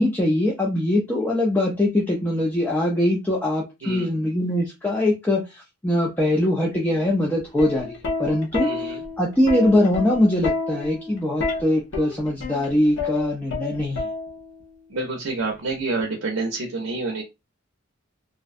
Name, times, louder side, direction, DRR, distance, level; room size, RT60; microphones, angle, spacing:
voice 1, 0.0-8.9 9.2-14.0, left 1 dB, 10° left, -3 dB, 0.4 m, -22 dB
Plucked string instrument, 7.4-14.6 15.7-16.0, left 3 dB, 65° left, 0.7 m, -29 dB
voice 2, 8.6-9.0 14.9-17.2, right 3 dB, 75° right, 2 dB, 0.5 m, -28 dB
2.5 x 2.1 x 2.5 m, 0.23 s
head